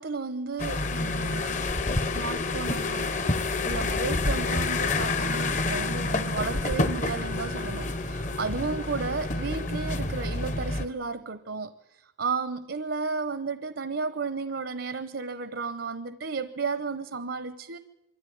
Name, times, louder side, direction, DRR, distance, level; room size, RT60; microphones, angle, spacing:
voice 1, 0.0-1.7 2.0-11.7 12.2-17.8, right 4 dB, 75° right, 0.8 m, -33 dB
sound 1, 0.6-10.9, left 2 dB, 40° left, 0.8 m, -28 dB
23.5 x 14.0 x 9.3 m
head